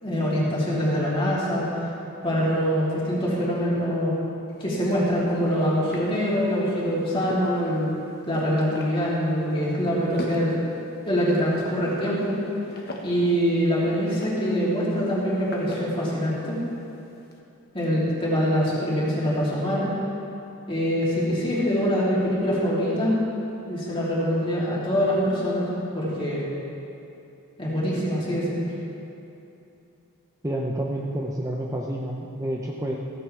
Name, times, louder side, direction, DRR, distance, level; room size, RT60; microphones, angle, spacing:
voice 1, 0.0-1.7 2.2-4.1 4.6-7.9 8.3-10.5 11.1-12.3 13.0-16.6 17.7-19.9 20.7-23.2 23.7-25.7 25.9-26.4 27.6-28.6, equal, 25° left, -7 dB, 3.2 m, -24 dB
sound 1, 4.5-17.4, left 1 dB, 45° left, 1.4 m, -41 dB
voice 2, 30.4-32.9, right 1 dB, 15° right, -2 dB, 0.7 m, -29 dB
16.0 x 15.0 x 3.4 m, 2.8 s
head